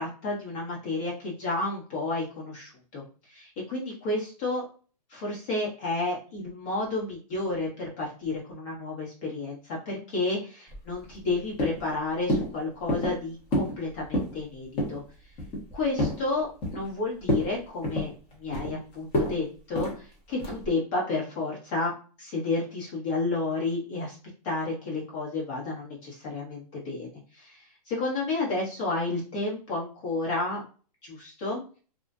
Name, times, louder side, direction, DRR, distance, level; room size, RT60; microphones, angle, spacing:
voice 1, 0.0-4.7 5.1-15.0 15.7-18.1 18.4-21.9 22.2-24.2 24.4-27.1 27.3-30.6 31.0-31.6, left 3 dB, 45° left, -4 dB, 1.1 m, -31 dB
sound 1, 10.7-11.3 11.6-11.9 12.3-12.5 12.9-13.2 13.5-13.8 14.0-14.4 14.8-15.0 15.4-16.2 16.6-17.0 17.2-17.5 17.8-18.7 19.1-19.3 19.7-20.0 20.4-20.7, left 1 dB, 25° left, 0.9 m, -28 dB
2.4 x 2.1 x 2.4 m, 0.38 s
hypercardioid pair, 140°, 21 cm